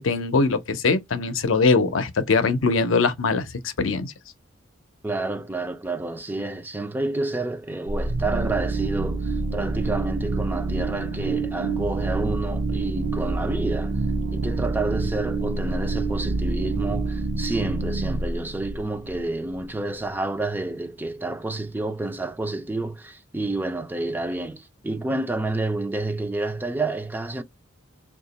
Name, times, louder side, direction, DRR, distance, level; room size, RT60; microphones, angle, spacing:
voice 1, 0.0-4.1, left 4 dB, 80° left, 0.6 m, -22 dB
voice 2, 5.0-14.0 14.3-27.4, right 2 dB, 10° right, 0.3 m, -29 dB
sound 1, 7.9-19.6, right 3 dB, 65° right, 0.5 m, -27 dB
2.8 x 2.3 x 3.9 m
head